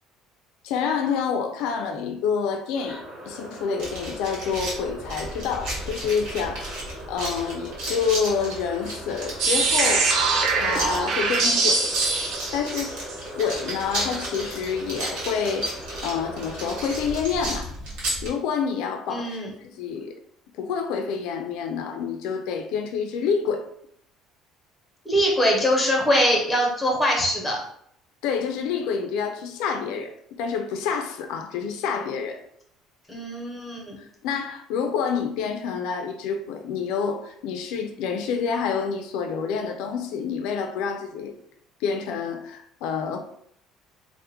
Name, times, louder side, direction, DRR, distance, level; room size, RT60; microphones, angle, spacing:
voice 1, 0.6-11.9 12.5-13.0 13.3-17.7 18.2-20.1 20.6-23.6 28.2-32.4 34.0-41.3 41.8-43.2, left 6 dB, 70° left, 5 dB, 0.3 m, -28 dB
sound 1, 2.7-17.2, equal, 20° right, 1.0 m, -39 dB
sound 2, 3.8-18.3, right 1 dB, 75° right, 1.3 m, -34 dB
sound 3, 9.4-13.1, right 4 dB, 45° right, 0.5 m, -23 dB
voice 2, 19.1-19.5 25.1-27.6 33.1-34.0, equal, ahead, -2 dB, 0.7 m, -22 dB
3.4 x 2.1 x 2.8 m, 0.69 s
cardioid pair, 170°, 0 cm